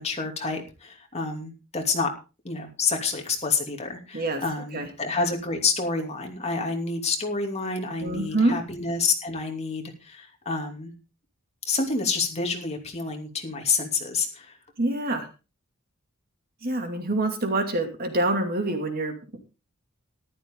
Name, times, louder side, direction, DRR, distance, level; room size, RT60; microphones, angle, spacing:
voice 1, 0.0-2.1 2.4-10.9 11.7-14.5, left 4 dB, 30° left, 3 dB, 2.8 m, -28 dB
voice 2, 8.0-8.6 14.8-15.3 16.6-19.4, right 2 dB, 45° right, 5 dB, 2.5 m, -26 dB
14.0 x 12.5 x 3.8 m, 0.31 s
head